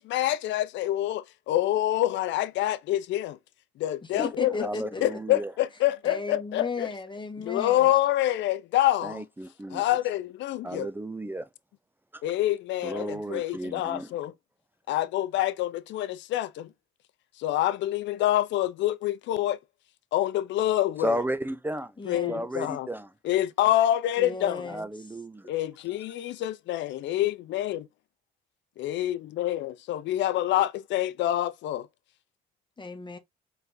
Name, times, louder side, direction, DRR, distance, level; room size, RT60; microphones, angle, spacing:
voice 1, 0.0-3.4 3.8-4.7 5.0-6.9 7.4-9.2 9.7-10.9 12.2-14.3 14.9-16.7 17.4-19.6 20.1-21.2 22.1-22.9 23.2-24.6 25.5-27.9 28.8-31.9, left 13 dB, 65° left, 0.6 m, -26 dB
voice 2, 4.0-5.0 6.0-7.9 22.0-22.4 24.2-24.9 32.8-33.2, left 4 dB, 25° left, 1.1 m, -35 dB
voice 3, 4.6-5.5 9.0-9.8 10.6-11.5 12.1-12.2 12.8-14.1 21.0-21.9 22.3-23.1 24.7-25.5, right 1 dB, 10° right, 0.4 m, -33 dB
4.3 x 3.3 x 2.6 m
supercardioid pair, 60°, 20 cm